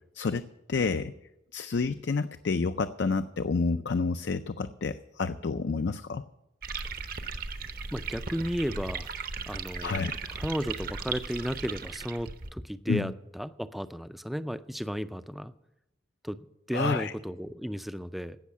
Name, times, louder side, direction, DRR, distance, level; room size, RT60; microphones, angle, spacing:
voice 1, 0.1-1.1 1.5-6.2 9.8-10.1 12.9-13.1 16.7-17.1, left 4 dB, 60° left, 10 dB, 0.4 m, -29 dB
sound 1, 6.6-12.5, right 4 dB, 45° right, 0.8 m, -37 dB
voice 2, 7.9-9.1 9.5-15.5 16.2-18.4, equal, ahead, 12 dB, 0.4 m, -34 dB
16.5 x 6.4 x 8.6 m, 0.88 s
head